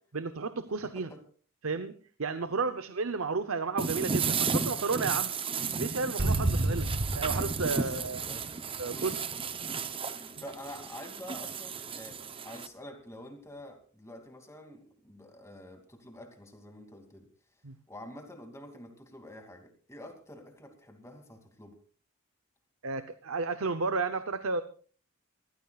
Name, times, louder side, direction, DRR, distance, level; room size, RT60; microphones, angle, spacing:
voice 1, 0.1-1.1 1.6-5.3 5.8-6.9 7.1-8.2 8.8-9.2 17.6-17.8 22.8-24.6, right 4 dB, 75° right, 10 dB, 0.8 m, -32 dB
voice 2, 0.8-1.2 7.7-8.4 8.9-9.1 10.1-12.2 12.4-17.3 17.9-21.8, left 1 dB, 15° left, 4 dB, 2.7 m, -47 dB
sound 1, 3.8-12.7, right 5 dB, 25° right, 0.8 m, -34 dB
sound 2, 6.2-8.9, right 1 dB, 50° right, 1.1 m, -31 dB
25.5 x 15.5 x 2.5 m, 0.42 s
head